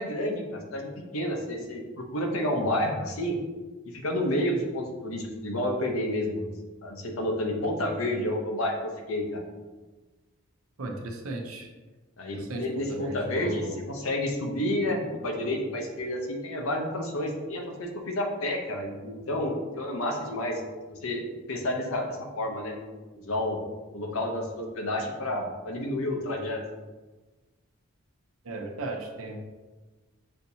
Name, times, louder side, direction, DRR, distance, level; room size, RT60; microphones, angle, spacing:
voice 1, 0.0-3.4 3.9-6.5 6.8-9.4 12.2-20.6 20.9-22.7 23.1-23.6 23.9-26.6, left 1 dB, 80° left, 2 dB, 0.8 m, -30 dB
voice 2, 10.8-11.7 12.3-12.6 12.9-13.8 28.5-29.4, right 1 dB, 85° right, 2 dB, 0.7 m, -35 dB
6.5 x 2.8 x 2.7 m, 1.2 s
head